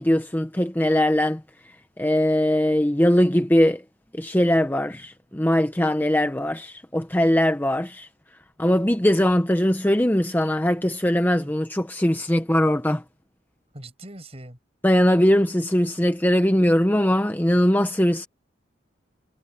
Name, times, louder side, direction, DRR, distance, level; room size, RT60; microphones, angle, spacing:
voice 1, 0.0-1.4 2.0-3.8 4.1-8.1 8.6-13.0 14.8-18.3, left 1 dB, 10° left, 0.8 m, -21 dB
voice 2, 13.7-14.6 16.4-16.5, right 1 dB, 30° right, 8.0 m, -42 dB
head